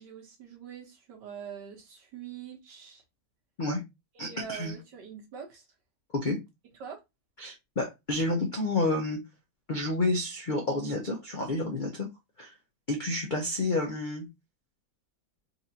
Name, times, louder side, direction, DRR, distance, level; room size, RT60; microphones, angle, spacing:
voice 1, 0.0-3.0 4.2-5.7 6.8-7.0, right 7 dB, 80° right, 1.7 m, -44 dB
voice 2, 4.2-4.8 6.1-6.4 7.4-9.2 9.7-12.1 12.4-12.5 12.9-14.3, left 2 dB, 75° left, 0.4 m, -29 dB
4.1 x 2.5 x 2.7 m
omnidirectional pair, 1.8 m